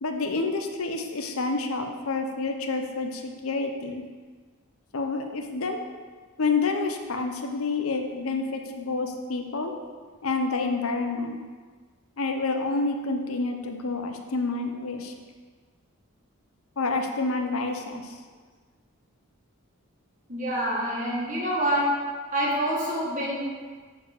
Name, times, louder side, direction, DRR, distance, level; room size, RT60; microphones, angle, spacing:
voice 1, 0.0-4.0 4.9-5.9 6.4-9.7 10.2-11.4 12.2-15.1 16.8-18.2, left 3 dB, 75° left, 4 dB, 0.8 m, -28 dB
voice 2, 20.3-21.8 22.3-23.4, right 1 dB, 35° right, -6 dB, 1.8 m, -27 dB
6.6 x 4.7 x 6.6 m, 1.5 s
head